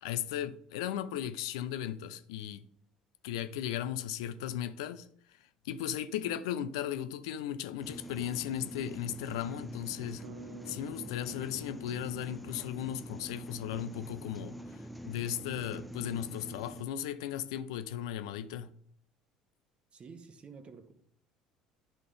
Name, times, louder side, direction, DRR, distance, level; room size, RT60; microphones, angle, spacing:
voice 1, 0.0-2.7 3.2-5.4 5.6-10.2 10.7-18.7, left 11 dB, 70° left, 0.4 m, -36 dB
sound 1, 7.8-16.8, equal, ahead, 0.5 m, -45 dB
Bass guitar, 10.2-14.3, right 4 dB, 70° right, 0.4 m, -54 dB
voice 2, 19.9-20.9, right 5 dB, 35° right, 1.0 m, -50 dB
11.0 x 3.7 x 3.3 m
figure-of-eight pair, 60°, 3 cm